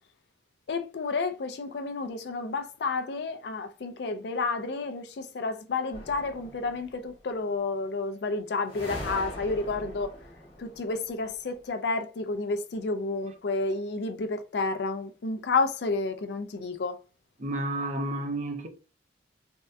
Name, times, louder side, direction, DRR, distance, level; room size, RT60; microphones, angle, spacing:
voice 1, 0.7-10.1 10.6-17.0, left 3 dB, 60° left, 0.4 m, -30 dB
sound 1, 5.9-7.1 8.7-11.5, equal, 30° left, 1.2 m, -42 dB
voice 2, 17.4-18.7, right 1 dB, 40° right, 0.5 m, -31 dB
3.5 x 2.1 x 2.6 m
head